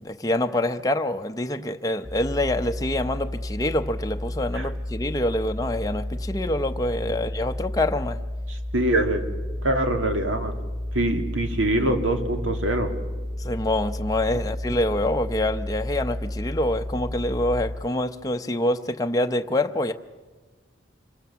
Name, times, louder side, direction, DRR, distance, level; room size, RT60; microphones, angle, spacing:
voice 1, 0.0-8.2 13.4-19.9, left 1 dB, 20° left, 6 dB, 0.6 m, -26 dB
sound 1, 2.0-17.7, left 1 dB, 35° right, 4.1 m, -32 dB
voice 2, 8.5-9.2 9.6-10.6 10.9-12.9, right 1 dB, 85° right, 5 dB, 2.2 m, -24 dB
25.5 x 22.5 x 7.0 m, 1.4 s
head